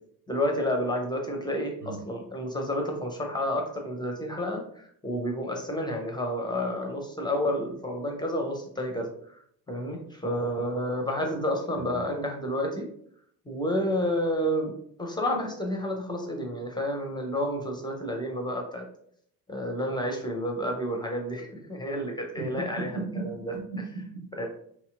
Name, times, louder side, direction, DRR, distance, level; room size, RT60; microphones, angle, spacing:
voice 1, 0.3-9.4 9.7-12.9 13.5-14.7 15.0-18.9 19.5-22.9 23.2-23.3 24.4-24.5, equal, 10° left, 1 dB, 0.6 m, -30 dB
voice 2, 22.8-24.3, right 3 dB, 85° right, -6 dB, 1.2 m, -36 dB
2.8 x 2.8 x 2.4 m, 0.65 s
figure-of-eight pair, 55°, 46 cm